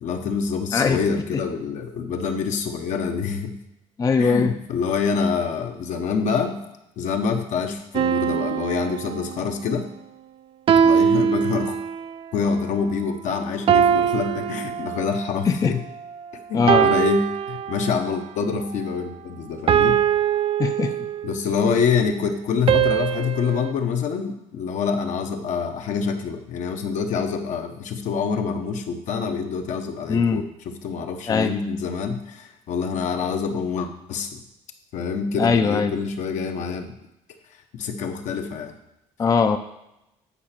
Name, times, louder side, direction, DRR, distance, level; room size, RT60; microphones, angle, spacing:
voice 1, 0.0-3.5 4.2-6.6 7.0-9.9 10.8-11.8 12.3-15.8 16.5-20.0 21.2-30.4 30.8-34.4 34.9-36.9 37.7-38.7, left 5 dB, 65° left, 5 dB, 1.0 m, -26 dB
voice 2, 4.0-4.5 15.4-15.8 16.5-16.9 20.6-21.1 30.1-30.4 31.3-31.5 35.4-35.9 39.2-39.6, left 5 dB, 25° left, 7 dB, 0.4 m, -20 dB
sound 1, 7.9-9.6 10.7-12.2 13.7-15.3 16.7-18.2 19.7-21.4 22.7-23.7, right 8 dB, 45° right, 0.4 m, -22 dB
8.5 x 4.9 x 4.4 m, 0.88 s
cardioid pair, 105°, 14 cm